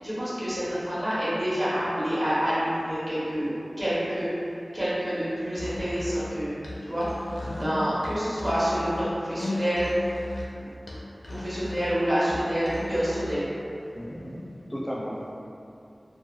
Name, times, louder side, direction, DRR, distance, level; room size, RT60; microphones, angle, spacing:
voice 1, 0.0-4.3 4.7-9.9 10.6-10.7 11.3-13.5, equal, 35° right, -11 dB, 1.0 m, -28 dB
Musical instrument, 5.5-13.5, left 2 dB, 85° left, 0.4 m, -37 dB
voice 2, 7.5-7.8 13.9-15.4, equal, 15° left, -5 dB, 0.5 m, -35 dB
3.1 x 2.0 x 2.4 m, 2.7 s
wide cardioid pair, 65°, 0 cm